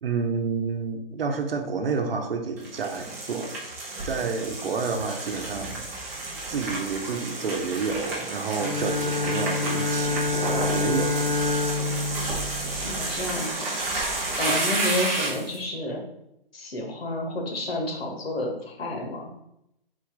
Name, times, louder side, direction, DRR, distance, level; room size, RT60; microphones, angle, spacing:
voice 1, 0.0-3.7 4.0-6.1 6.5-11.2 14.5-14.6, right 5 dB, 75° right, 5 dB, 0.8 m, -30 dB
sound 1, 2.6-15.6, right 2 dB, 15° right, 0.7 m, -31 dB
Bowed string instrument, 8.6-13.5, left 3 dB, 45° left, 0.7 m, -28 dB
voice 2, 12.8-13.7 14.4-16.0 16.5-19.2, left 1 dB, 85° left, 0 dB, 1.5 m, -30 dB
4.1 x 2.5 x 4.6 m, 0.80 s
hypercardioid pair, 170°, 29 cm